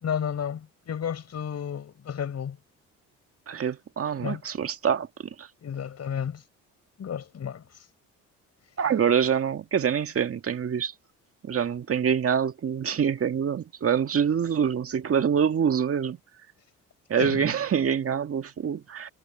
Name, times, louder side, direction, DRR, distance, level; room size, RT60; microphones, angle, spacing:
voice 1, 0.0-2.6 4.2-4.4 5.6-6.4 7.0-7.6 17.2-17.5, left 8 dB, 50° left, 5.6 m, -32 dB
voice 2, 3.5-5.5 8.8-10.9 11.4-16.2 17.1-19.1, right 7 dB, 45° right, 1.9 m, -25 dB
cardioid pair, 80°, 32 cm